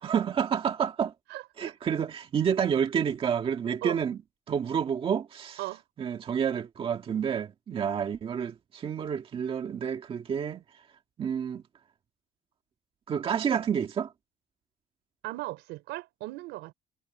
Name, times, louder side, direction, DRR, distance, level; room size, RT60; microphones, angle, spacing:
voice 1, 0.0-1.1 1.6-4.2 4.5-5.6 6.0-10.6 11.2-11.6 13.1-14.1, right 7 dB, 30° right, 1.7 m, -29 dB
voice 2, 1.3-1.7 3.8-4.0 5.6-5.8 15.2-16.7, right 19 dB, 75° right, 3.9 m, -37 dB
cardioid pair, 160°, 19 cm